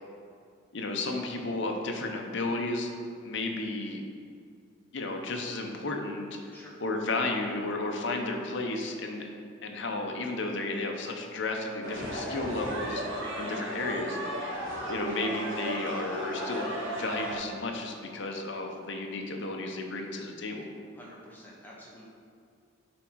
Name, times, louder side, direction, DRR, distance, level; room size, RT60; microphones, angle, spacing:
voice 1, 0.7-2.9 3.2-4.0 4.9-6.5 6.8-9.3 9.6-13.0 13.4-14.2 14.9-20.7, left 2 dB, 55° left, 2 dB, 0.7 m, -33 dB
sound 1, 11.8-17.4, equal, 60° right, 1.6 m, -34 dB
voice 2, 20.9-22.1, equal, 10° left, -5 dB, 1.0 m, -49 dB
7.4 x 3.6 x 4.6 m, 2.3 s
head